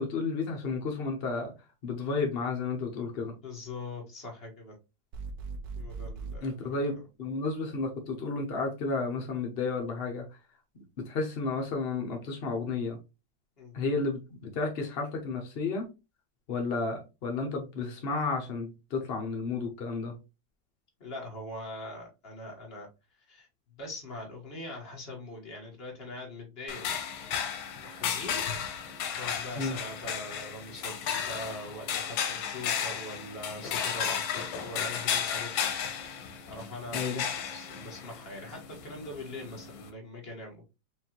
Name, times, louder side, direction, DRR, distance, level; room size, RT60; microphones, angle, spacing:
voice 1, 0.0-1.5 1.8-3.3 6.4-10.2 11.0-13.0 13.7-15.9 16.5-20.1 29.6-29.8 36.9-37.2, left 4 dB, 65° left, 2 dB, 0.6 m, -32 dB
voice 2, 3.4-4.7 5.7-7.0 13.6-13.7 21.0-22.9 23.3-27.0 27.8-28.4 28.9-35.7 36.5-37.2 37.5-40.6, left 1 dB, 35° left, -1 dB, 1.5 m, -42 dB
sound 1, 5.1-6.4, right 4 dB, 65° right, 1.0 m, -38 dB
sound 2, 26.7-39.9, left 8 dB, 85° left, 1.5 m, -34 dB
5.0 x 2.6 x 2.9 m, 0.27 s
omnidirectional pair, 2.1 m